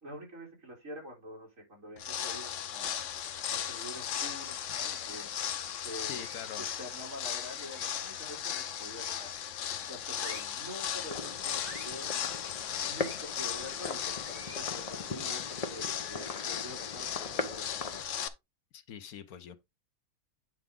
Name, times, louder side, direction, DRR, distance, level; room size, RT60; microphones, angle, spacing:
voice 1, 0.0-3.0 3.5-5.3 5.8-6.3 6.6-12.1 12.8-18.1, equal, 60° right, 3.7 m, -46 dB
sound 1, 2.0-18.3, left 9 dB, 60° left, 1.0 m, -37 dB
voice 2, 6.1-6.7 18.7-19.6, left 8 dB, 80° left, 1.3 m, -44 dB
sound 2, 6.1-6.6 7.7-8.1 9.0-9.4 10.2-10.6 11.6-12.0 12.9-13.2 14.2-14.7, right 2 dB, 85° right, 4.0 m, -49 dB
sound 3, 11.0-18.0, left 4 dB, 30° left, 0.7 m, -40 dB
9.3 x 4.7 x 3.7 m
omnidirectional pair, 1.5 m